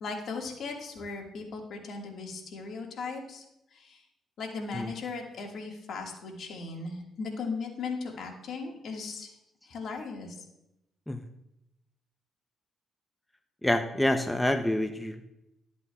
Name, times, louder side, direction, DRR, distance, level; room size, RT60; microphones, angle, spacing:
voice 1, 0.0-3.4 3.7-4.0 4.4-9.3 9.6-10.4, left 4 dB, 65° left, 1 dB, 1.6 m, -37 dB
voice 2, 13.6-15.3, left 1 dB, 10° left, 7 dB, 0.5 m, -27 dB
12.5 x 8.1 x 2.3 m, 0.86 s
cardioid pair, 90°, 0 cm